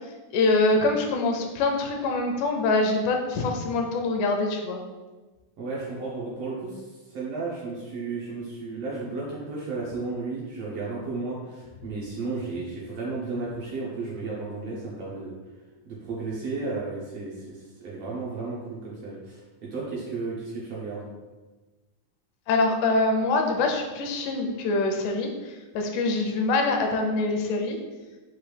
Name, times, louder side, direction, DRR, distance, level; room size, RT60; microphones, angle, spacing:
voice 1, 0.3-4.8 22.5-27.8, left 2 dB, 85° left, 3 dB, 2.1 m, -24 dB
voice 2, 5.6-15.4 15.8-21.0, right 3 dB, 70° right, -6 dB, 1.6 m, -33 dB
6.1 x 2.6 x 3.2 m, 1.2 s
omnidirectional pair, 3.6 m